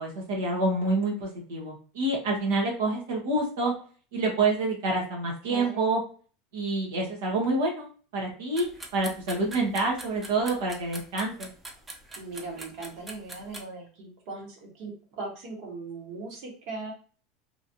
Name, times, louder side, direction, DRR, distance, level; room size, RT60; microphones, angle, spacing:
voice 1, 0.0-3.7 4.1-6.0 6.5-7.9 8.1-11.5, right 2 dB, 85° right, -2 dB, 1.0 m, -27 dB
voice 2, 5.4-5.9 12.2-16.9, right 3 dB, 65° right, 0 dB, 1.3 m, -39 dB
sound 1, 8.6-13.6, right 2 dB, 15° right, 0.7 m, -43 dB
3.0 x 2.5 x 2.8 m, 0.41 s
supercardioid pair, 120°, 0 cm